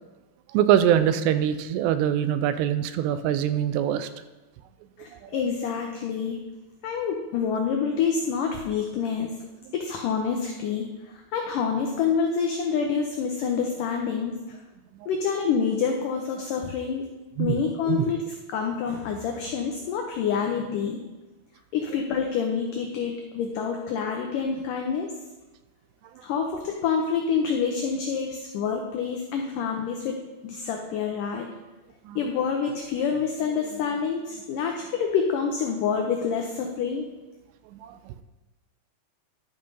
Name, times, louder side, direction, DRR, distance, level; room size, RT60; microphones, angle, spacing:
voice 1, 0.5-4.1 5.2-5.4 15.0-15.1 17.4-17.6 17.9-18.1 32.1-32.2 37.7-38.2, right 10 dB, 85° right, 12 dB, 2.7 m, -24 dB
voice 2, 5.0-6.4 6.8-9.3 9.7-14.6 15.1-17.1 17.4-21.0 21.7-25.2 26.2-31.5 32.2-37.1, left 6 dB, 85° left, 3 dB, 1.8 m, -27 dB
11.5 x 5.4 x 5.4 m, 1.1 s
omnidirectional pair, 4.9 m